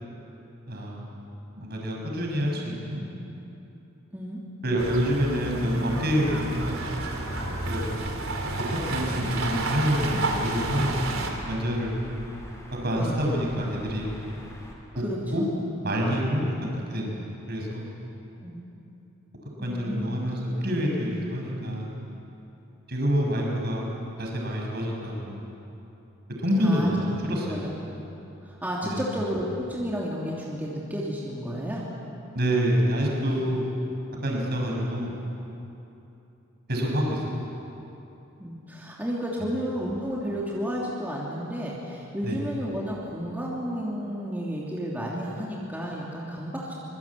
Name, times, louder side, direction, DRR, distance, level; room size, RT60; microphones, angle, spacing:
voice 1, 0.7-1.1 1.5-3.0 4.6-6.8 7.7-7.9 8.7-11.9 12.8-14.1 14.9-15.0 15.3-15.4 15.8-17.9 19.6-21.9 22.9-23.9 24.2-25.4 26.4-27.7 28.8-29.0 32.3-33.7 34.2-35.1 36.7-37.4 42.2-42.4, equal, 50° right, -1 dB, 6.2 m, -27 dB
sound 1, 4.8-11.3, right 2 dB, 80° right, 3.6 m, -31 dB
sound 2, 7.0-14.7, equal, 15° left, 4.2 m, -45 dB
voice 2, 13.0-13.3 15.0-15.5 18.4-18.8 19.6-20.1 26.6-26.9 27.5-27.6 28.4-31.8 38.4-46.7, equal, 10° right, -5 dB, 3.0 m, -32 dB
25.0 x 24.0 x 8.6 m, 2.9 s
head